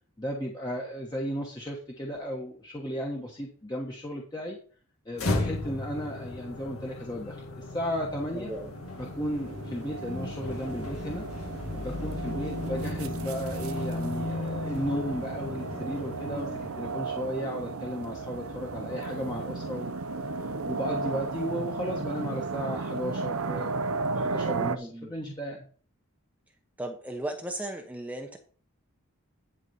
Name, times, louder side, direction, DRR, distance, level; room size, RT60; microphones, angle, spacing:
voice 1, 0.2-4.6 5.0-8.5 9.0-11.3 11.7-20.3 20.7-25.6, equal, 20° left, -1 dB, 1.2 m, -35 dB
sound 1, 5.1-17.1, left 2 dB, 85° left, 2.0 m, -35 dB
voice 2, 8.3-8.7 24.6-25.1 26.8-28.4, right 1 dB, 5° right, 3 dB, 0.8 m, -36 dB
sound 2, 8.5-24.8, right 4 dB, 80° right, 0.7 m, -35 dB
11.0 x 4.1 x 5.5 m, 0.42 s
head